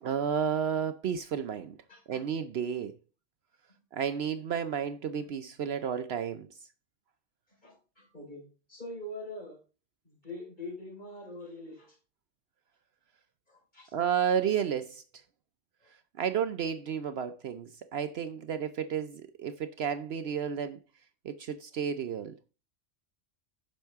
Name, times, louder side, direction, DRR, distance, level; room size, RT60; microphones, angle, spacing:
voice 1, 0.0-1.8 2.1-2.9 3.9-6.5 13.9-15.0 16.2-20.8 21.2-22.3, right 8 dB, 65° right, 0.8 m, -32 dB
voice 2, 1.9-2.2 3.7-3.8 7.6-8.4 8.7-9.6 10.0-12.0 13.5-13.9 18.9-19.0, left 1 dB, 40° left, 4.7 m, -44 dB
10.0 x 6.3 x 3.5 m
omnidirectional pair, 1.2 m